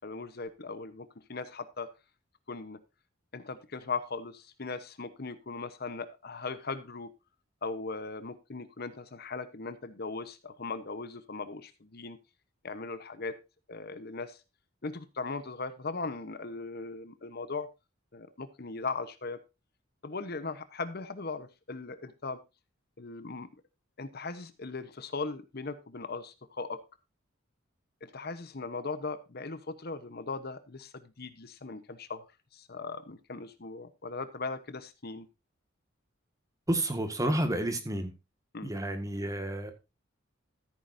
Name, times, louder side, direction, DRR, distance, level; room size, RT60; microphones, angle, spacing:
voice 1, 0.0-1.9 2.5-2.8 3.3-7.1 7.6-12.2 12.6-13.4 13.7-14.4 14.8-17.7 18.1-19.4 20.0-22.4 23.0-23.5 24.0-26.8 28.0-32.3 32.5-35.3 38.5-38.7, left 4 dB, 50° left, 1.0 m, -38 dB
voice 2, 36.7-38.1 38.6-39.7, right 1 dB, 15° right, 1.8 m, -30 dB
14.0 x 9.4 x 2.7 m
head